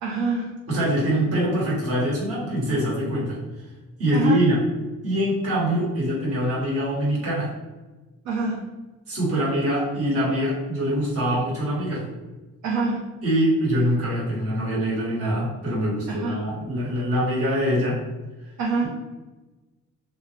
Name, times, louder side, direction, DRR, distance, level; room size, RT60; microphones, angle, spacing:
voice 1, 0.0-0.5 4.1-4.4 8.3-8.6 12.6-13.0 16.1-16.4 18.6-18.9, right 3 dB, 70° right, -4 dB, 0.5 m, -25 dB
voice 2, 0.7-3.4 4.0-4.6 5.0-7.5 9.1-12.0 13.2-18.0, equal, 50° right, -6 dB, 1.3 m, -24 dB
2.3 x 2.0 x 3.1 m, 1.2 s
cardioid pair, 90°, 30 cm